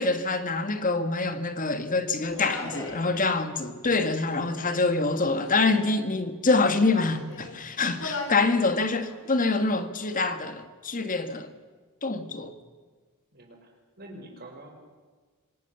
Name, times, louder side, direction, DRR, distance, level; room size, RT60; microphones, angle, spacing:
voice 1, 0.0-11.5 12.0-12.5, left 3 dB, 40° left, 1.7 m, -25 dB
Human voice, 2.2-3.0 3.9-4.8 5.3-6.0 6.6-7.6 7.9-8.5 8.9-9.6, left 2 dB, 60° left, 4.9 m, -39 dB
voice 2, 13.3-13.7 14.0-14.7, right 1 dB, 45° right, 5.1 m, -46 dB
26.5 x 18.5 x 7.0 m
head